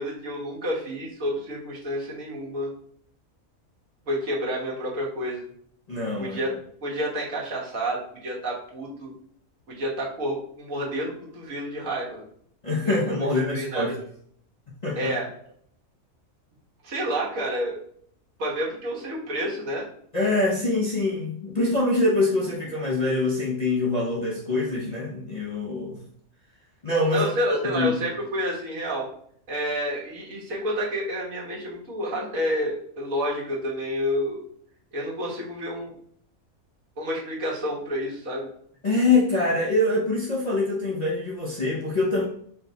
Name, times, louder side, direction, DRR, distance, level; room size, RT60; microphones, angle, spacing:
voice 1, 0.0-2.7 4.1-5.4 6.2-6.5 6.8-9.1 9.7-12.3 12.8-14.0 14.9-15.3 16.8-17.8 18.4-19.9 27.1-29.1 29.5-34.4 34.9-36.0 37.0-38.5, equal, 70° right, -4 dB, 1.5 m, -29 dB
voice 2, 5.9-6.4 12.6-13.9 14.8-15.1 20.1-26.0 26.8-27.3 27.7-28.0 38.8-42.3, left 2 dB, 45° left, -4 dB, 0.6 m, -24 dB
4.4 x 2.2 x 3.9 m, 0.64 s
omnidirectional pair, 1.5 m